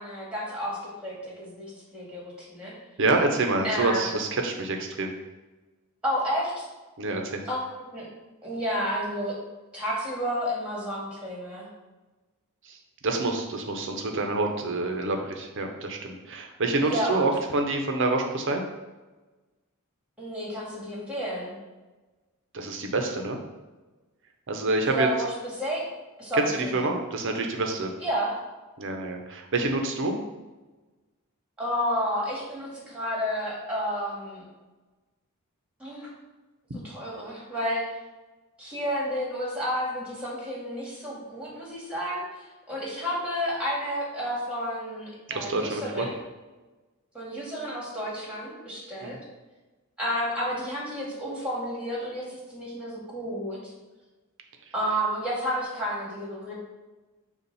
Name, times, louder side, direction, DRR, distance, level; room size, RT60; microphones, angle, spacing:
voice 1, 0.0-2.7 3.6-4.1 6.0-6.7 7.5-8.1 8.4-9.3 9.7-11.7 16.8-17.3 20.2-21.6 24.8-25.8 26.2-26.8 28.0-28.4 31.6-34.4 35.8-36.1 36.8-37.9 38.6-46.2 47.1-49.2 50.0-53.7 54.7-56.5, equal, 5° right, -5 dB, 1.9 m, -31 dB
voice 2, 3.0-5.1 7.0-7.4 12.7-12.8 13.0-18.6 22.5-23.4 24.5-25.1 26.3-27.9 28.8-30.2 45.3-46.1 49.0-49.2, right 2 dB, 60° right, 3 dB, 0.8 m, -27 dB
6.8 x 2.5 x 5.4 m, 1.2 s
head